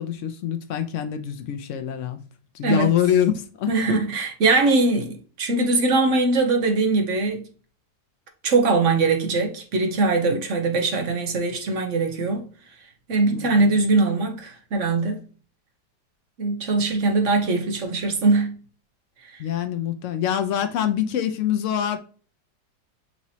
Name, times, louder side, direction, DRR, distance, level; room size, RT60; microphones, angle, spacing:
voice 1, 0.0-2.2 2.5-3.7 13.3-13.7 19.4-22.0, left 9 dB, 85° left, 0.6 m, -25 dB
voice 2, 3.7-7.5 8.4-12.5 13.1-15.2 16.4-18.6 19.2-19.4, right 3 dB, 55° right, 1.0 m, -21 dB
5.9 x 3.0 x 2.7 m
omnidirectional pair, 1.8 m